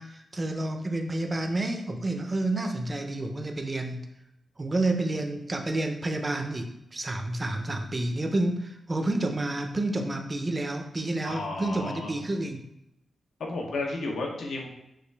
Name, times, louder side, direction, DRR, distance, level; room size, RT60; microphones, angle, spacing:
voice 1, 0.0-4.1 4.6-12.6, right 2 dB, 25° right, 4 dB, 0.5 m, -29 dB
voice 2, 11.2-12.1 13.4-14.7, left 2 dB, 85° left, 0 dB, 0.8 m, -32 dB
4.8 x 2.4 x 3.3 m, 0.85 s
wide cardioid pair, 120°, 0 cm